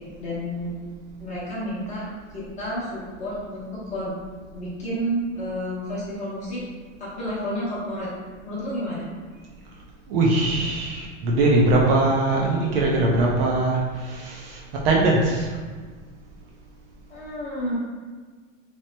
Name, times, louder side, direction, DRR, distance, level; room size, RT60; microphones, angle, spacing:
voice 1, 0.2-0.7 1.2-2.1 2.3-4.1 4.5-6.6 7.0-8.1 8.4-9.1 17.1-17.7, equal, 20° left, -8 dB, 0.9 m, -30 dB
voice 2, 10.1-15.6, right 2 dB, 50° right, -2 dB, 0.5 m, -21 dB
3.0 x 2.0 x 3.1 m, 1.5 s
supercardioid pair, 140°, 39 cm